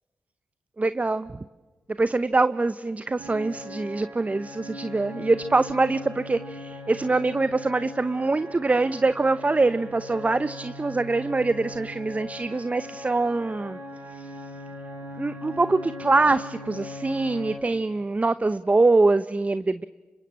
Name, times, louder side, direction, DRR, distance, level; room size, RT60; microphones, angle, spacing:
voice 1, 0.8-1.4 2.0-13.8 14.1-14.3 15.2-19.8, right 3 dB, 35° right, 13 dB, 0.8 m, -24 dB
sound 1, 3.2-17.6, left 1 dB, 85° right, 6.5 m, -40 dB
27.5 x 25.5 x 7.5 m, 1.3 s
supercardioid pair, 45°, 4 cm